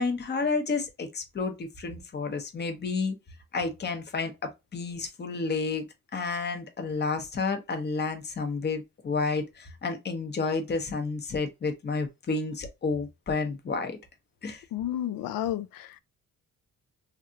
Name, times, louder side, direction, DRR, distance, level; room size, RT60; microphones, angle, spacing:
voice 1, 0.0-3.1 3.5-5.9 6.1-14.0 14.4-14.6, left 4 dB, 30° left, 0.8 m, -30 dB
voice 2, 14.7-16.0, left 12 dB, 75° left, 0.5 m, -31 dB
3.2 x 2.5 x 2.7 m
cardioid pair, 115°, 34 cm